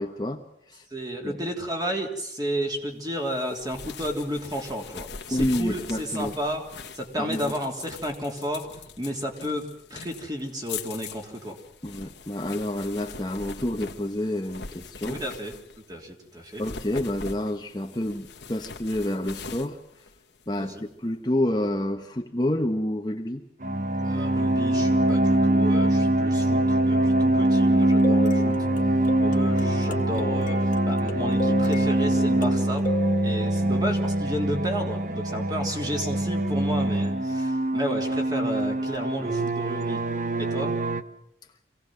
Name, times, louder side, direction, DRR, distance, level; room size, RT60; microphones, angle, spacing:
voice 1, 0.0-0.9 1.2-1.4 5.3-6.3 7.2-7.6 11.8-15.2 16.6-19.8 20.5-23.4, left 1 dB, 25° left, 4 dB, 1.1 m, -29 dB
voice 2, 0.9-6.6 6.9-8.7 9.0-11.6 15.1-15.5 15.9-16.6 20.6-20.8 24.0-28.6 29.2-32.9 33.2-40.0 40.4-40.8, equal, 20° right, 2 dB, 3.4 m, -32 dB
sound 1, 3.3-15.9 16.4-20.7, left 5 dB, 85° left, 1.7 m, -42 dB
sound 2, 23.6-41.0, right 1 dB, 45° right, 1.0 m, -23 dB
sound 3, 27.8-34.7 38.9-39.0 39.5-39.6, left 1 dB, 45° left, 2.0 m, -34 dB
26.0 x 17.5 x 7.7 m, 0.76 s
head